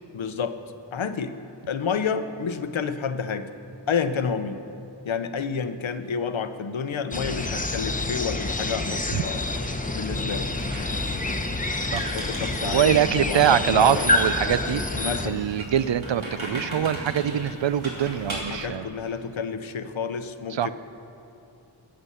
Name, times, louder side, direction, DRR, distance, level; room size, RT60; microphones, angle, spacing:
voice 1, 0.1-0.6 0.9-1.4 1.7-3.5 3.9-4.6 5.0-9.5 9.9-10.5 12.1-14.1 15.0-15.5 18.5-20.7, left 6 dB, 75° left, 10 dB, 0.8 m, -29 dB
sound 1, 7.1-15.3, left 2 dB, 15° left, 0.8 m, -27 dB
Squeak, 10.5-18.6, right 1 dB, 85° right, 3.1 m, -38 dB
voice 2, 12.7-14.8 15.3-18.9 20.5-20.7, right 9 dB, 65° right, 14 dB, 0.5 m, -23 dB
20.0 x 7.7 x 5.6 m, 2.8 s
wide cardioid pair, 80°, 47 cm